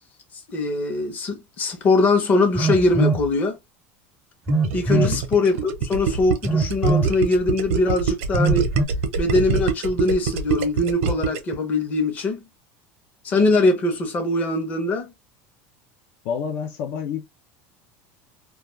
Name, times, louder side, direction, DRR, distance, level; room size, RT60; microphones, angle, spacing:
voice 1, 0.5-3.6 4.7-8.7 9.2-12.4 13.2-15.1, left 2 dB, 25° left, 0.7 m, -22 dB
Telephone, 2.6-3.3 4.5-5.2 6.4-7.2 8.4-8.9, right 3 dB, 10° right, 0.3 m, -22 dB
Gurgling, 4.5-11.6, right 6 dB, 90° right, 0.7 m, -24 dB
voice 2, 4.9-5.2 16.2-17.2, left 8 dB, 55° left, 0.4 m, -28 dB
2.3 x 2.3 x 3.0 m
cardioid pair, 170°, 7 cm